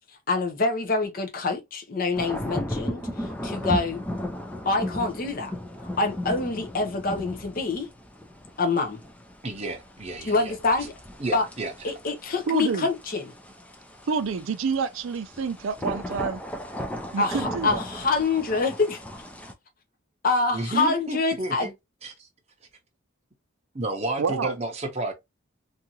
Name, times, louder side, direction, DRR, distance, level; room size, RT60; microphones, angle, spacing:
voice 1, 0.3-4.0 4.7-5.5 6.0-7.9 8.6-9.0 10.2-10.9 11.3-11.5 11.8-13.3 17.2-19.0 20.2-21.7, left 3 dB, 45° left, 0.6 m, -26 dB
sound 1, 2.1-19.5, left 1 dB, 5° left, 0.3 m, -36 dB
voice 2, 9.4-10.5 11.2-11.7 20.5-21.7 22.0-22.3 23.7-25.1, right 2 dB, 30° right, 0.7 m, -31 dB
voice 3, 12.5-12.9 14.1-16.4 17.1-17.8 24.2-24.5, right 5 dB, 75° right, 0.4 m, -28 dB
2.7 x 2.4 x 2.8 m
head